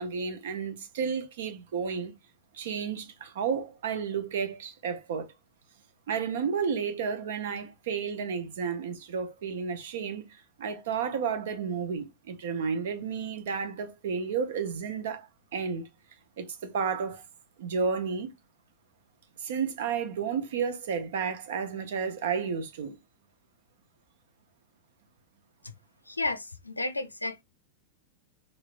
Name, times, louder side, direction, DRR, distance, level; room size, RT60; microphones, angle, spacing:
voice 1, 0.0-2.1 2.5-5.3 6.1-10.3 10.6-15.9 16.4-17.2 17.6-18.3 19.4-23.0, right 6 dB, 60° right, 0.6 m, -32 dB
voice 2, 26.1-27.4, left 2 dB, 85° left, 0.4 m, -32 dB
3.0 x 2.9 x 2.5 m
figure-of-eight pair, 90°, 0 cm